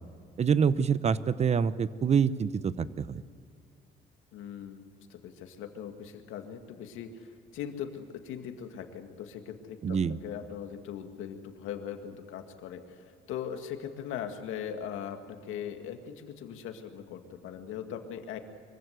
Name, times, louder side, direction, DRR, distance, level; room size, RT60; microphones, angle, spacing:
voice 1, 0.4-3.2 9.8-10.2, right 6 dB, 30° right, 16 dB, 0.8 m, -26 dB
voice 2, 4.3-18.4, left 8 dB, 80° left, 6 dB, 2.2 m, -40 dB
24.0 x 16.0 x 8.3 m, 2.3 s
cardioid pair, 120°, 21 cm